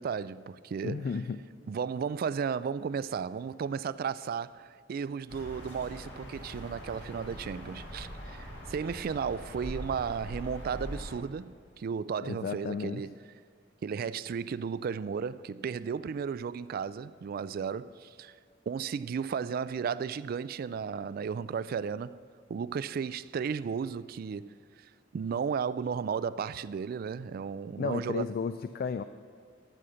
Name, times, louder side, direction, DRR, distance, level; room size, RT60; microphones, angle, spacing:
voice 1, 0.0-1.0 1.7-13.2 13.8-18.3 18.7-22.2 22.5-24.5 25.1-28.2, right 6 dB, 55° right, 0.3 m, -34 dB
voice 2, 0.8-1.4 12.2-13.0 27.8-29.0, left 5 dB, 55° left, 0.3 m, -33 dB
sound 1, 5.3-11.2, equal, 75° left, 2.4 m, -42 dB
13.5 x 6.4 x 5.7 m
head